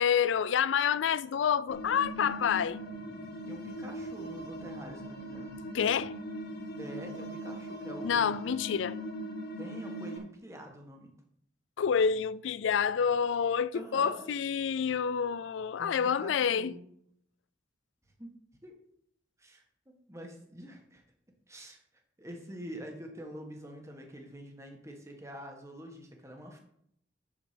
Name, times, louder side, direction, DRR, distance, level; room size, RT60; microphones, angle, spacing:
voice 1, 0.0-2.8 5.7-6.1 8.0-9.0 11.8-16.7, left 7 dB, 70° left, 0.4 m, -28 dB
sound 1, 1.7-10.2, equal, 55° left, 1.3 m, -40 dB
voice 2, 3.5-5.5 6.8-8.3 9.6-11.1 13.7-14.3 15.8-16.8 18.2-18.3 18.6-18.8 19.4-21.0 21.5-21.8 22.2-26.6, equal, 15° right, 1.5 m, -46 dB
7.2 x 7.2 x 5.1 m
head